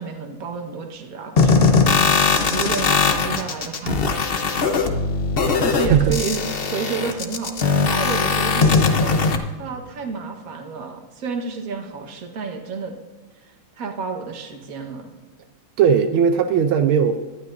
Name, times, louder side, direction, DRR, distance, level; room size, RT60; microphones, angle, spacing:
voice 1, 0.0-1.8 2.4-4.1 5.6-9.1 9.6-12.9 13.4-15.1, right 5 dB, 45° right, 4 dB, 1.6 m, -31 dB
sound 1, 1.4-9.4, left 4 dB, 65° left, 0.5 m, -19 dB
voice 2, 15.8-17.2, right 7 dB, 80° right, 7 dB, 1.5 m, -17 dB
19.0 x 12.0 x 2.6 m, 1.3 s
omnidirectional pair, 2.3 m